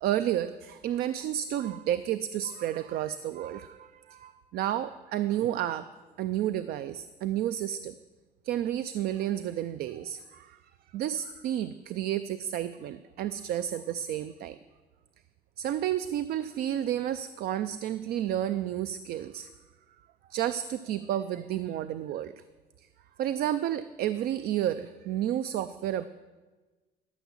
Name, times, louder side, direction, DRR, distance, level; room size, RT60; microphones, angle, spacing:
voice 1, 0.0-5.9 6.2-7.9 8.4-10.6 10.9-14.6 15.6-19.5 20.3-22.3 23.2-26.0, right 11 dB, 70° right, 13 dB, 0.4 m, -31 dB
13.0 x 6.0 x 7.2 m, 1.3 s
cardioid pair, 110°, 17 cm